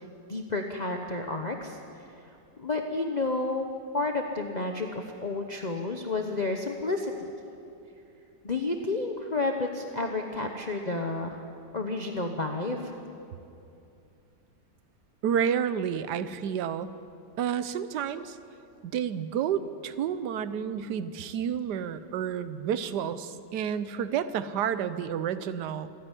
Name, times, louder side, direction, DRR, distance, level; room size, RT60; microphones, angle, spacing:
voice 1, 0.0-3.7 3.9-7.3 8.4-11.4 11.7-13.0 22.7-22.8, left 3 dB, 30° left, 3 dB, 1.0 m, -31 dB
voice 2, 15.2-16.9 17.4-18.4 18.8-25.9, right 8 dB, 75° right, 13 dB, 1.4 m, -30 dB
27.0 x 10.0 x 9.9 m, 2.6 s
omnidirectional pair, 1.8 m